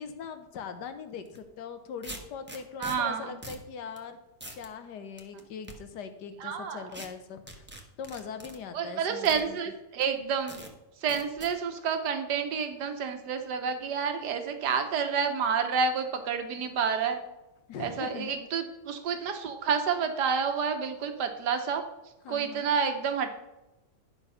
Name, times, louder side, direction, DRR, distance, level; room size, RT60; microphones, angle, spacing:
voice 1, 0.0-4.2 4.5-7.7 8.0-9.6 17.7-18.5 22.2-22.7, left 6 dB, 80° left, 9 dB, 1.6 m, -41 dB
sound 1, 1.2-1.4 2.0-3.0 3.4-3.6 4.0-4.1 4.4-4.7 5.2-5.7 6.9-7.1 7.5-8.6 9.2-9.4 10.0-10.1 10.5-10.7 11.1-11.5, right 1 dB, 10° right, 1.0 m, -43 dB
voice 2, 2.8-3.3 6.4-6.8 8.7-10.6 11.0-17.2 17.8-21.8 22.3-23.4, right 6 dB, 80° right, 6 dB, 1.7 m, -29 dB
11.0 x 5.8 x 5.6 m, 0.99 s
omnidirectional pair, 1.8 m